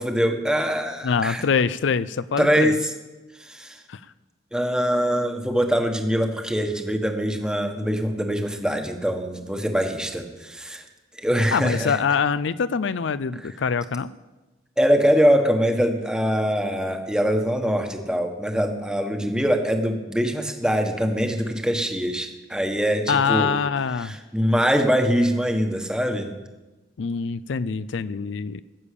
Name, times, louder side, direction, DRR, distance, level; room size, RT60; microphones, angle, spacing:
voice 1, 0.0-1.4 2.4-2.9 3.4-3.8 4.5-10.9 11.1-12.0 14.8-23.5 24.0-26.3, equal, 5° right, 4 dB, 1.2 m, -23 dB
voice 2, 1.0-2.8 3.9-4.0 11.5-14.1 23.1-24.2 27.0-28.6, left 6 dB, 70° left, 15 dB, 0.4 m, -24 dB
16.5 x 7.1 x 8.4 m, 1.1 s
head